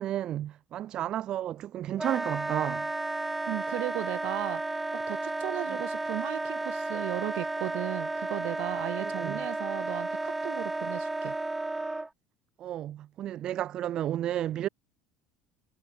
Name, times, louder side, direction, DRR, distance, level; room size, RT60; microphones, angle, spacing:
voice 1, 0.0-2.9 9.0-9.4 12.6-14.7, right 12 dB, 35° right, 2.4 m, -32 dB
Wind instrument woodwind instrument, 2.0-12.1, right 2 dB, 10° right, 1.0 m, -33 dB
voice 2, 3.5-11.4, right 24 dB, 60° right, 2.7 m, -36 dB
cardioid pair, 165°, 2 cm